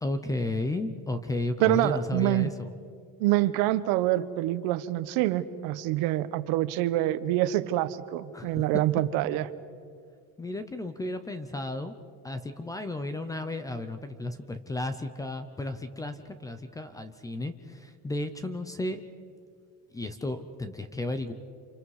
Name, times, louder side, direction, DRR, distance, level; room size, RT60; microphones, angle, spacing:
voice 1, 0.0-2.7 8.3-8.7 10.4-12.0 12.2-19.0 19.9-21.3, left 2 dB, 10° left, 10 dB, 0.6 m, -33 dB
voice 2, 1.6-2.5 3.2-9.5, right 14 dB, 65° right, 13 dB, 1.1 m, -26 dB
30.0 x 27.5 x 4.8 m, 2.2 s
cardioid pair, 175°, 39 cm